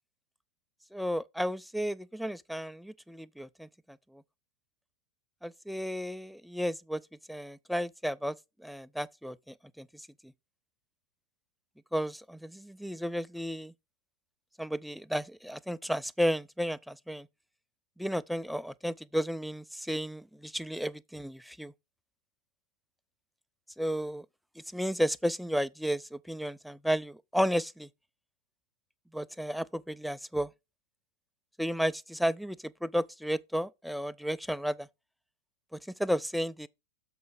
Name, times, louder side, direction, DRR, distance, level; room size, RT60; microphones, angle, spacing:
voice 1, 0.9-4.2 5.4-7.0 7.3-10.3 11.9-13.7 14.6-17.3 18.0-21.7 23.8-24.3 24.6-27.9 29.1-30.5 31.6-34.9 35.7-36.7, equal, ahead, 0.3 m, -33 dB
7.0 x 5.7 x 4.0 m
figure-of-eight pair, 90°, 0 cm